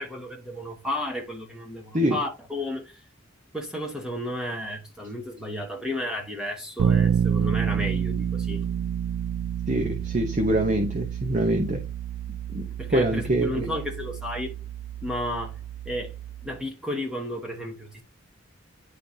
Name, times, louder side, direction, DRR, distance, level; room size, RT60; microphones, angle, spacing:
voice 1, 0.0-3.0 3.5-8.6 12.8-14.5 15.0-15.6 15.8-16.1 16.4-18.0, left 1 dB, 5° right, 1.2 m, -33 dB
Bass guitar, 6.8-16.6, right 8 dB, 90° right, 0.3 m, -29 dB
voice 2, 9.7-11.8 12.5-12.6 12.9-13.7, right 1 dB, 35° right, 0.8 m, -24 dB
10.0 x 3.8 x 2.7 m
head